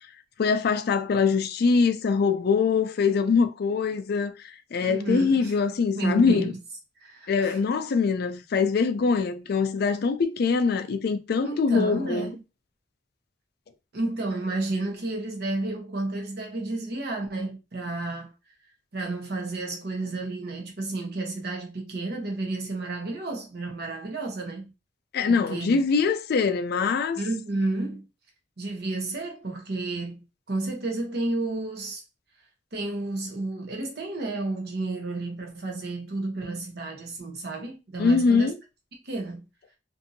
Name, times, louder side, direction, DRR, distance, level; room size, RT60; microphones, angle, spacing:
voice 1, 0.4-6.5 7.3-12.3 25.1-27.2 38.0-38.6, left 5 dB, 60° left, 0.4 m, -23 dB
voice 2, 4.8-5.5 5.9-6.6 7.0-7.6 11.4-12.4 13.9-18.3 18.9-24.7 25.3-25.8 27.2-28.0 28.6-32.0 32.7-38.5 39.0-39.4, right 2 dB, 60° right, 0.9 m, -31 dB
2.6 x 2.6 x 2.6 m
head